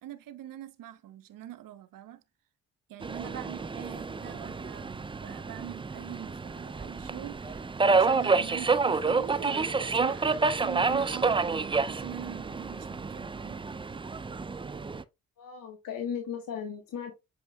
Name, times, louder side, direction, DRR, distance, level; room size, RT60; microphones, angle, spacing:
voice 1, 0.0-2.2 2.9-13.6, right 13 dB, 65° right, 0.8 m, -43 dB
Subway metro underground, 3.0-15.0, right 4 dB, 15° right, 0.4 m, -29 dB
voice 2, 3.9-4.3 15.4-17.1, left 7 dB, 65° left, 1.4 m, -37 dB
7.8 x 5.2 x 2.3 m
hypercardioid pair, 45°, 36 cm